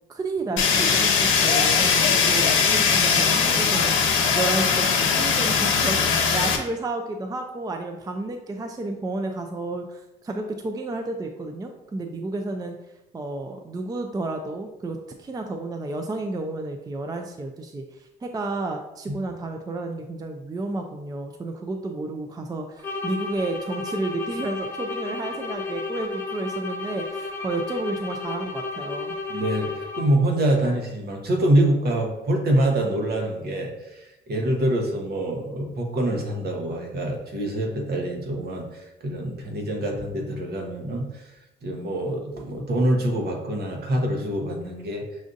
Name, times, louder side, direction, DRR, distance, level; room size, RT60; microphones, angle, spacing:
voice 1, 0.1-12.8 13.1-29.2, right 2 dB, 20° right, 4 dB, 0.4 m, -31 dB
Fire, 0.6-6.6, left 6 dB, 85° left, 0.7 m, -20 dB
sound 1, 22.8-30.3, left 3 dB, 10° left, 1.0 m, -32 dB
voice 2, 29.3-41.2 41.6-45.0, right 1 dB, 55° right, 1 dB, 1.0 m, -25 dB
6.1 x 2.6 x 2.5 m, 0.93 s
cardioid pair, 90°, 20 cm